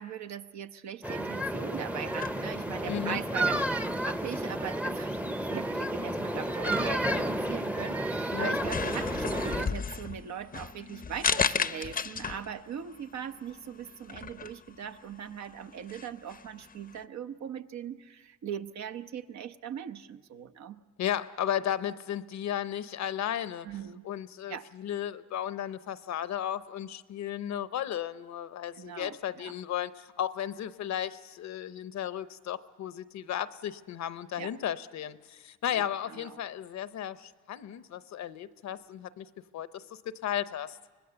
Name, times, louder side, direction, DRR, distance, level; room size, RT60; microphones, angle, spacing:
voice 1, 0.0-5.2 5.5-20.8 23.6-24.0 24.5-24.7 28.7-29.5 34.4-34.5 35.7-36.4, right 8 dB, 65° right, 9 dB, 0.9 m, -40 dB
sound 1, 1.0-9.7, right 1 dB, 5° right, 0.7 m, -31 dB
sound 2, 2.1-17.0, left 6 dB, 30° left, 0.7 m, -37 dB
voice 2, 2.9-3.2 8.3-8.5 21.0-23.7 24.0-39.3 39.5-39.8 40.2-40.8, left 10 dB, 65° left, 14 dB, 0.8 m, -34 dB
25.0 x 19.5 x 6.9 m, 1.4 s
cardioid pair, 90°, 30 cm